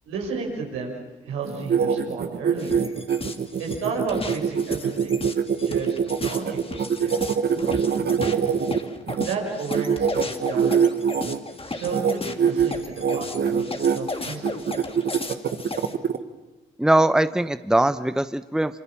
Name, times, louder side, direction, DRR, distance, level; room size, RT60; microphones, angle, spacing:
voice 1, 0.0-1.0 1.2-2.9 3.6-5.2 5.6-7.3 9.0-11.0 11.7-14.5, right 4 dB, 80° right, 0 dB, 6.5 m, -32 dB
sound 1, 1.4-9.3 9.7-11.4 11.8-12.1 12.4-12.7 13.0-14.0 14.4-16.2, right 7 dB, 50° right, 1.7 m, -23 dB
sound 2, 2.6-15.9, left 3 dB, 25° left, 2.8 m, -35 dB
voice 2, 16.8-18.8, right 1 dB, 5° right, 13 dB, 1.0 m, -21 dB
26.5 x 26.5 x 7.4 m, 1.1 s
hypercardioid pair, 45°, 21 cm